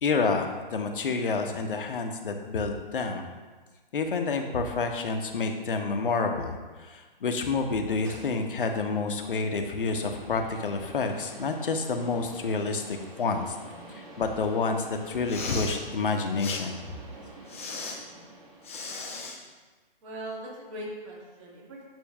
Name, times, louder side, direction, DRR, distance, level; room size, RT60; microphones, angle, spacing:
voice 1, 0.0-3.3 3.9-13.6 13.9-16.9, left 4 dB, 65° left, 4 dB, 0.9 m, -29 dB
sound 1, 7.6-19.3, right 2 dB, 15° right, 0.7 m, -47 dB
Respiratory sounds, 15.2-15.8 16.4-16.6 17.5-18.0 18.6-19.4, left 3 dB, 15° left, 0.4 m, -36 dB
voice 2, 20.0-21.9, right 1 dB, 35° right, -4 dB, 2.0 m, -40 dB
9.0 x 6.1 x 2.3 m, 1.3 s
hypercardioid pair, 145°, 29 cm